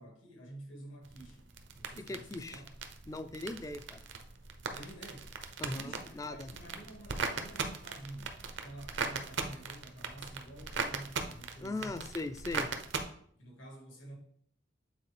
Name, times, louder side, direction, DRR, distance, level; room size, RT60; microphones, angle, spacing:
voice 1, 0.0-1.5 1.8-2.7 4.7-5.3 5.7-12.0 12.7-12.8 13.4-14.2, right 1 dB, 80° left, 1.8 m, -49 dB
sound 1, 1.0-13.0, right 4 dB, 65° right, 0.7 m, -40 dB
voice 2, 2.0-2.6 3.1-4.0 5.6-6.5 11.6-12.7, left 2 dB, 15° left, 0.4 m, -39 dB
8.3 x 4.0 x 3.3 m
head